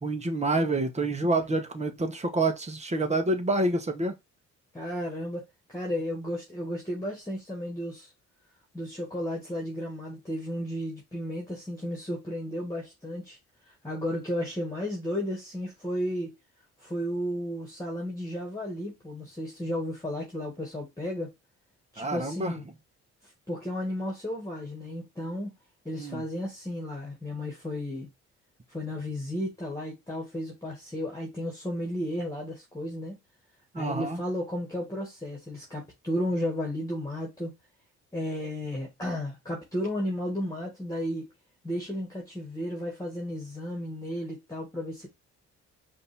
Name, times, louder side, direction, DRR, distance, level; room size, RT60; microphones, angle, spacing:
voice 1, 0.0-4.1 22.0-22.5 25.9-26.2 33.7-34.2, right 2 dB, 20° right, 1.2 m, -27 dB
voice 2, 4.7-8.1 8.7-13.4 13.7-16.3 16.8-21.3 21.9-22.6 23.5-25.5 25.8-28.1 28.7-33.2 33.8-37.5 38.1-41.3 41.6-45.1, equal, 10° left, 1.9 m, -33 dB
5.2 x 2.8 x 3.5 m
cardioid pair, 90°, 30 cm